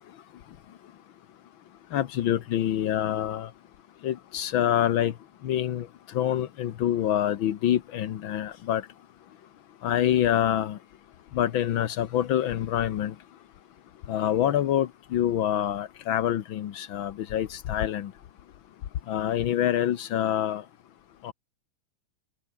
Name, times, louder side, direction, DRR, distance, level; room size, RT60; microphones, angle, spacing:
voice 1, 1.9-3.5 4.0-5.1 5.4-5.9 6.1-8.8 9.8-10.8 11.3-13.1 14.1-18.1 19.1-20.6 21.2-21.3, left 11 dB, 85° left, 1.1 m, -26 dB
omnidirectional pair, 3.7 m